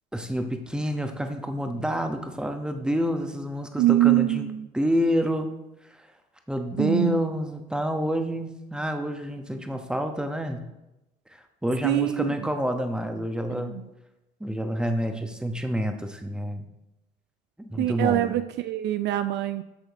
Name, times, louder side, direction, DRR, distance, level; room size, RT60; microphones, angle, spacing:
voice 1, 0.1-5.5 5.9-6.1 6.5-10.6 11.3-13.8 14.4-16.6 17.7-18.3, equal, 5° right, 5 dB, 1.0 m, -28 dB
voice 2, 3.8-4.7 6.8-7.2 11.8-12.3 13.5-13.9 17.8-19.6, right 15 dB, 60° right, 11 dB, 0.4 m, -24 dB
8.6 x 6.4 x 3.6 m, 0.93 s
hypercardioid pair, 60°, 21 cm